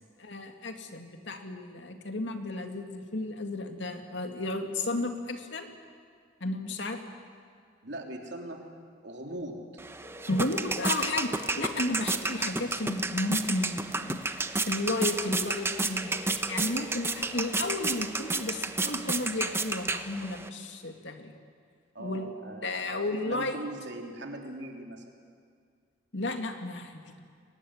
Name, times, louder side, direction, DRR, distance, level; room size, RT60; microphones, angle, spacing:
voice 1, 0.2-5.7 6.4-7.0 10.3-14.2 14.7-21.4 22.0-22.3 22.6-23.6 26.1-27.2, left 2 dB, 70° left, 5 dB, 2.2 m, -33 dB
voice 2, 7.8-8.7 9.0-9.6 16.1-16.2 21.9-25.0, right 1 dB, 65° right, 2 dB, 3.3 m, -40 dB
sound 1, 9.8-20.5, right 3 dB, 15° right, 0.9 m, -31 dB
sound 2, 10.0-12.0 16.0-18.0, equal, 20° left, 2.9 m, -48 dB
24.0 x 19.5 x 9.6 m, 2.1 s
head